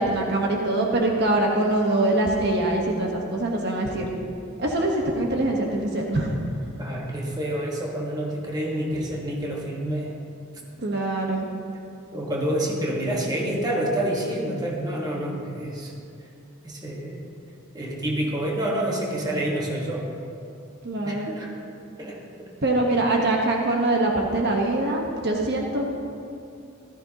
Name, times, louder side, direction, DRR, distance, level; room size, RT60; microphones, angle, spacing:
voice 1, 0.0-4.1 4.6-6.3 10.8-11.5 20.8-21.3 22.6-25.9, right 2 dB, 55° right, 0 dB, 1.2 m, -23 dB
voice 2, 6.8-10.1 12.1-15.9 16.6-17.2 17.7-20.1 21.0-21.6 22.0-22.2, right 1 dB, 20° right, -2 dB, 1.4 m, -28 dB
14.5 x 13.5 x 2.9 m, 2.5 s
head